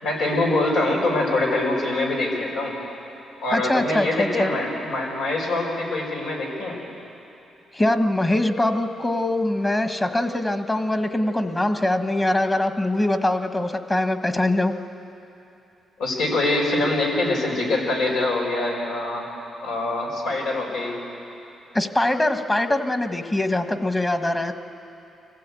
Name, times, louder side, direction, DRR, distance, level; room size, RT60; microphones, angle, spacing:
voice 1, 0.0-2.7 3.4-6.8 16.0-19.2 19.6-21.0, left 2 dB, 90° left, -1 dB, 5.0 m, -24 dB
voice 2, 3.5-4.5 7.7-14.7 21.7-24.5, left 1 dB, 20° left, 8 dB, 1.3 m, -23 dB
25.0 x 16.0 x 8.4 m, 2.9 s
cardioid pair, 90°, 0 cm